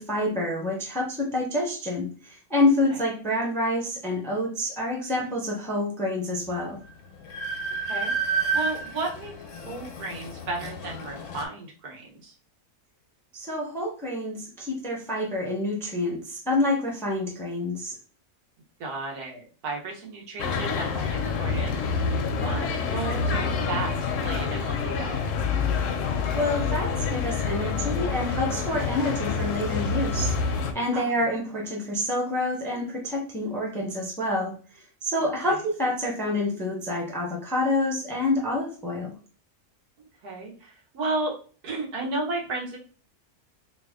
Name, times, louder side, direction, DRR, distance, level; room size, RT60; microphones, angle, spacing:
voice 1, 0.0-6.8 13.3-18.0 26.3-39.1, left 1 dB, ahead, -1 dB, 0.6 m, -28 dB
Train, 6.5-6.6 6.9-11.4, right 4 dB, 85° left, 1.2 m, -31 dB
voice 2, 7.9-9.3 9.6-12.3 18.8-23.9 24.2-25.3 30.9-31.2 35.4-35.5 40.0-41.3 41.6-42.8, right 3 dB, 85° right, -1 dB, 1.6 m, -34 dB
sound 1, 20.4-30.7, left 5 dB, 65° left, 0.9 m, -27 dB
3.4 x 2.4 x 3.5 m, 0.39 s
omnidirectional pair, 1.6 m